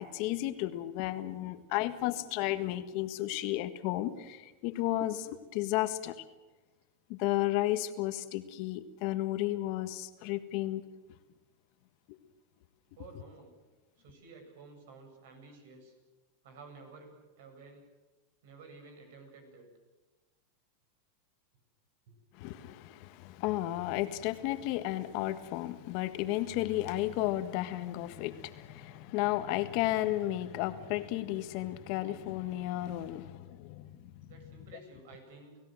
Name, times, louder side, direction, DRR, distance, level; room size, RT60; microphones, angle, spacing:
voice 1, 0.0-6.1 7.1-10.8 12.1-12.2 22.4-34.3, left 15 dB, 55° left, 10 dB, 1.6 m, -33 dB
voice 2, 12.9-13.5 14.0-15.9 16.4-17.1 17.4-17.9 18.4-19.7 22.1-22.2 34.3-35.6, right 3 dB, 70° right, 5 dB, 7.5 m, -52 dB
29.5 x 16.5 x 7.8 m, 1.2 s
supercardioid pair, 130°, 0 cm